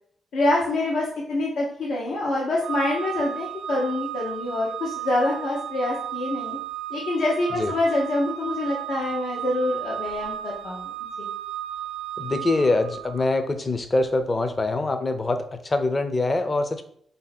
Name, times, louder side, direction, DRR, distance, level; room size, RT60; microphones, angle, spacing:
voice 1, 0.3-6.6 6.9-10.9 11.2-11.3, left 2 dB, 85° left, -4 dB, 0.9 m, -26 dB
Organ, 2.6-13.4, right 11 dB, 75° right, 0.5 m, -34 dB
voice 2, 12.2-16.8, left 2 dB, 25° left, 8 dB, 0.5 m, -24 dB
4.4 x 2.7 x 4.0 m, 0.65 s
cardioid pair, 120°, 0 cm